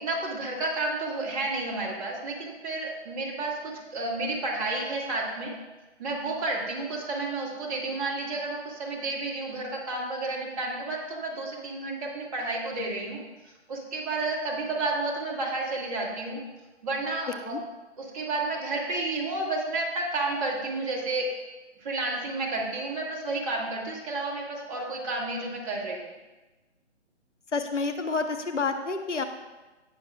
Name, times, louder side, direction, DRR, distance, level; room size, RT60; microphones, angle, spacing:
voice 1, 0.0-5.5 6.0-16.4 16.8-17.6 18.0-21.3 21.8-26.1, right 2 dB, 30° right, -3 dB, 2.0 m, -31 dB
voice 2, 27.5-29.2, left 4 dB, 85° left, 7 dB, 1.1 m, -29 dB
17.5 x 6.4 x 2.4 m, 1.1 s
figure-of-eight pair, 145°, 35 cm